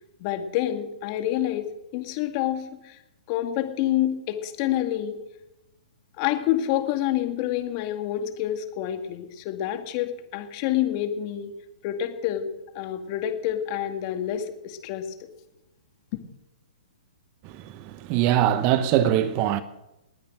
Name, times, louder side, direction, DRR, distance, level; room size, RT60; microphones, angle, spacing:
voice 1, 0.2-3.0 3.3-5.2 6.2-11.5 11.8-12.5 12.7-15.3 16.1-16.2, left 12 dB, 35° left, 2.2 m, -28 dB
voice 2, 17.4-19.6, right 11 dB, 35° right, 1.0 m, -23 dB
19.5 x 10.0 x 6.4 m
hypercardioid pair, 140°, 4 cm